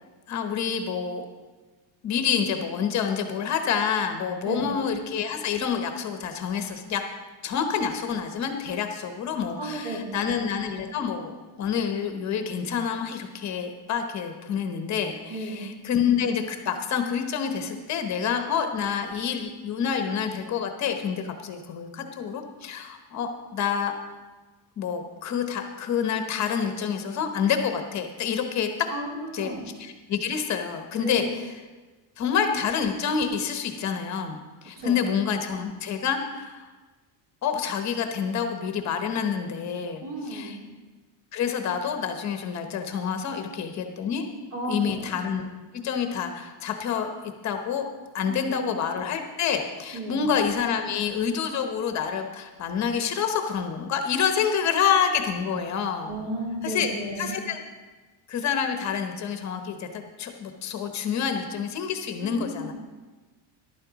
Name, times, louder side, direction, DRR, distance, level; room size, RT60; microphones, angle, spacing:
voice 1, 0.3-1.3 2.0-7.0 7.4-23.9 24.8-28.9 29.3-29.5 29.8-31.2 32.2-36.7 37.4-40.6 41.3-44.2 44.7-45.5 45.8-47.1 47.4-47.8 48.1-56.1 56.6-56.9 57.2-57.6 58.3-62.7, left 7 dB, 40° left, 6 dB, 0.9 m, -28 dB
voice 2, 9.6-10.3 15.3-15.7 28.9-29.6 31.0-31.3 34.7-35.1 40.0-40.6 44.5-45.0 48.3-48.7 49.9-50.3 56.1-57.3 62.2-62.7, right 1 dB, 65° right, -1 dB, 3.4 m, -33 dB
14.0 x 11.5 x 4.0 m, 1.3 s
cardioid pair, 175°, 45 cm